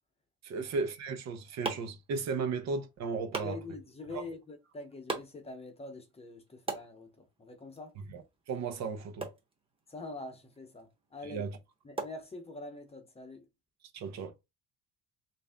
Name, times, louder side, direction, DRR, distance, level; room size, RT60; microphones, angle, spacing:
voice 1, 0.4-3.6 4.1-4.2 8.1-8.2 8.5-9.3 11.2-11.6 13.9-14.3, right 4 dB, 60° right, 0.9 m, -35 dB
sound 1, 1.0-12.9, right 3 dB, 20° right, 1.0 m, -45 dB
voice 2, 3.4-7.9 9.9-11.5 11.8-13.4, left 3 dB, 20° left, 0.9 m, -45 dB
3.4 x 2.7 x 3.5 m
cardioid pair, 140°, 31 cm